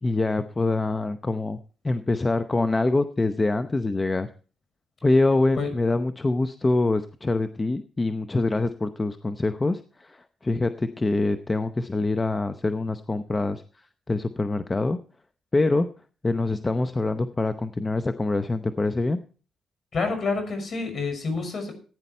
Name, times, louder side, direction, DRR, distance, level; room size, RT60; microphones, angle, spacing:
voice 1, 0.0-1.6 1.8-4.3 5.0-13.6 14.1-15.0 15.5-15.9 16.2-19.2, left 2 dB, 20° left, 10 dB, 0.7 m, -25 dB
voice 2, 19.9-21.7, left 4 dB, 50° left, 7 dB, 5.9 m, -28 dB
15.0 x 9.7 x 4.4 m, 0.39 s
cardioid pair, 90°, 0 cm